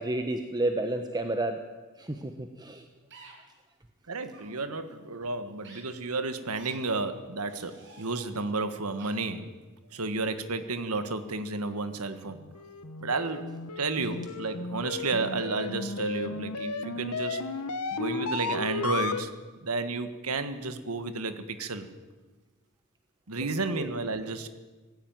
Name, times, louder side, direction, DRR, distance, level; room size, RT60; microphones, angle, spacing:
voice 1, 0.0-1.6 2.0-2.8 23.7-23.9, right 2 dB, 20° right, 6 dB, 1.1 m, -31 dB
sound 1, 3.1-3.3 4.3-4.5 5.6-5.8 6.5-6.8 7.4-8.3 9.0-9.1, right 3 dB, 55° right, 7.1 m, -50 dB
voice 2, 4.1-9.5 9.9-12.4 13.0-13.5 13.8-17.4 17.9-19.3 19.6-21.9 23.3-24.5, right 3 dB, 75° right, 10 dB, 1.7 m, -32 dB
sound 2, 12.2-19.2, left 3 dB, 90° left, 1.4 m, -34 dB
19.0 x 16.0 x 9.3 m, 1.3 s
head